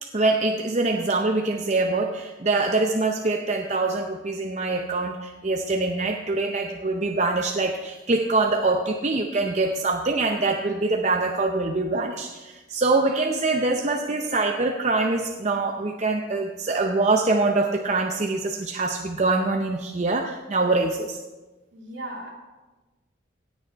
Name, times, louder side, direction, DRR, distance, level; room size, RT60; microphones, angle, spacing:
voice 1, 0.0-21.2, right 3 dB, 35° right, 3 dB, 0.6 m, -24 dB
voice 2, 21.7-22.3, right 1 dB, 65° right, -2 dB, 2.8 m, -36 dB
17.0 x 6.5 x 4.5 m, 1.2 s
head